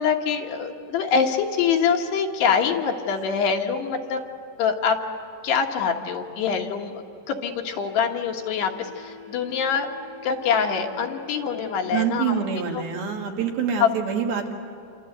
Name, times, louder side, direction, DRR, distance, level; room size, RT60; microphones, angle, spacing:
voice 1, 0.0-4.2 4.6-5.0 5.4-9.9 10.2-12.4 12.7-12.8 13.8-13.9, left 6 dB, 80° left, 3 dB, 3.6 m, -24 dB
sound 1, 6.7-12.6, left 5 dB, 45° right, 3.7 m, -47 dB
voice 2, 11.9-14.5, right 7 dB, 65° right, 2 dB, 3.5 m, -26 dB
28.0 x 25.5 x 8.0 m, 2.4 s
omnidirectional pair, 4.8 m